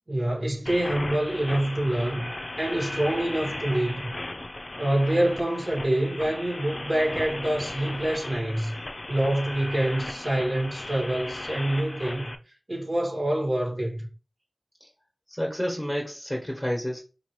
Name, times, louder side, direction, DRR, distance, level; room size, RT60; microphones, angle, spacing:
voice 1, 0.1-2.3 2.6-4.1 4.8-8.8 9.1-12.3 12.7-14.1, right 1 dB, 55° right, 2.1 m, -26 dB
sound 1, 0.7-12.4, left 2 dB, 50° left, 0.4 m, -36 dB
voice 2, 15.3-17.0, equal, 5° left, 1.2 m, -30 dB
5.0 x 2.8 x 3.1 m
wide cardioid pair, 45°, 0 cm